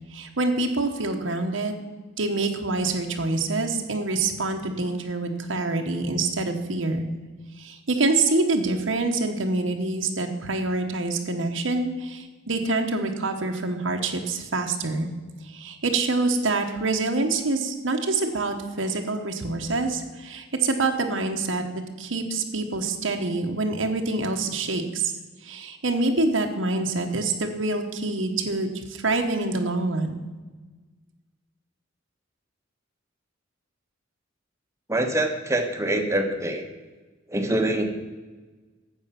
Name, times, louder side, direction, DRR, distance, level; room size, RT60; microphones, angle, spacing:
voice 1, 0.1-1.8 2.2-7.1 7.6-15.1 15.4-25.1 25.4-30.2, right 3 dB, 75° right, 3 dB, 1.2 m, -26 dB
voice 2, 34.9-36.6 37.3-37.8, right 1 dB, 15° right, 5 dB, 1.2 m, -24 dB
12.5 x 8.0 x 5.9 m, 1.3 s
head